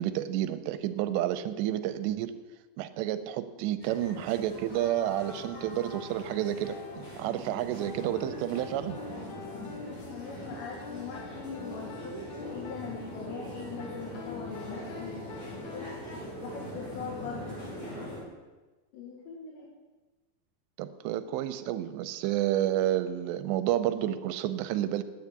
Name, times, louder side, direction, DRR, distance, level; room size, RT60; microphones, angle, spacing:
voice 1, 0.0-2.3 2.8-9.0 20.8-25.0, right 12 dB, 90° right, 11 dB, 2.8 m, -30 dB
sound 1, 3.8-18.2, equal, 30° left, 4.7 m, -42 dB
sound 2, 4.8-16.0, left 5 dB, 60° left, 2.0 m, -46 dB
voice 2, 9.8-15.9 16.4-17.7 18.9-19.7, left 5 dB, 80° left, -2 dB, 4.0 m, -41 dB
10.5 x 8.5 x 9.6 m, 1.3 s
omnidirectional pair, 5.0 m